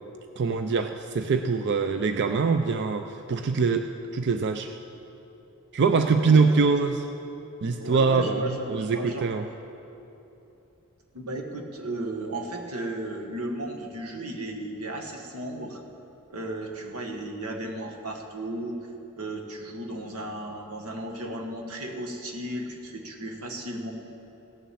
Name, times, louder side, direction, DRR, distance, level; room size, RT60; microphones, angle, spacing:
voice 1, 0.4-4.7 5.7-7.0 7.6-9.5, right 4 dB, 50° right, 7 dB, 0.5 m, -24 dB
voice 2, 7.8-9.3 11.1-15.8 16.3-18.8 19.1-23.9, right 1 dB, 90° right, 2 dB, 1.5 m, -35 dB
16.5 x 7.3 x 7.0 m, 2.9 s
head